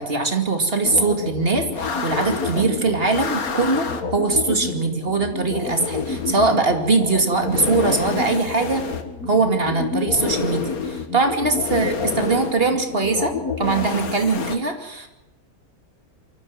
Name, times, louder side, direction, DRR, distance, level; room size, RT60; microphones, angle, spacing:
voice 1, 0.0-8.9 9.3-15.1, right 3 dB, 40° right, 5 dB, 2.7 m, -21 dB
sound 1, 0.8-14.6, left 5 dB, 80° left, 2.0 m, -28 dB
24.0 x 14.5 x 7.7 m, 0.99 s
omnidirectional pair, 1.5 m